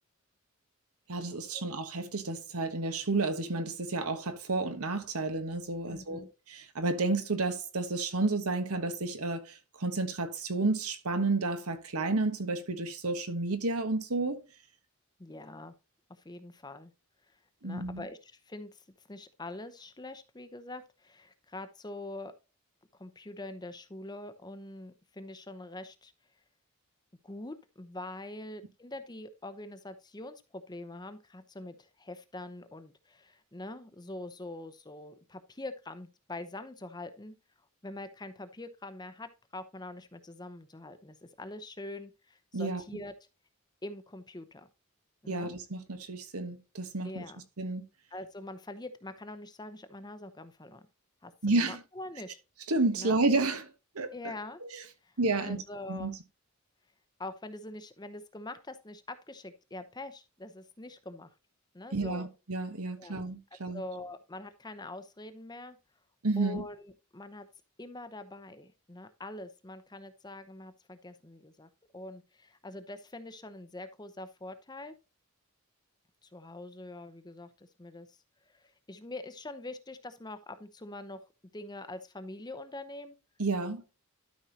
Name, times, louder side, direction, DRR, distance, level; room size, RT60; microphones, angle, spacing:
voice 1, 1.1-14.4 17.6-18.0 42.5-42.8 45.3-47.2 47.6-47.8 51.4-51.8 52.7-54.1 54.7-54.8 55.2-55.6 55.9-56.1 61.9-63.8 66.2-66.6 83.4-83.8, right 3 dB, 90° right, 1.3 m, -31 dB
voice 2, 5.9-6.3 15.2-15.8 16.2-16.9 17.6-18.8 19.1-22.3 22.9-26.1 27.2-37.3 37.8-43.1 43.8-44.7 45.2-45.5 47.0-47.4 48.1-50.8 51.2-52.4 53.0-53.2 54.1-54.6 55.0-55.1 55.4-56.2 57.2-61.3 61.7-62.3 63.0-63.2 63.7-65.8 66.4-67.5 67.8-74.9 76.2-78.2 78.5-81.2 81.5-83.2, left 2 dB, 20° left, 0.8 m, -44 dB
12.5 x 5.4 x 2.9 m
head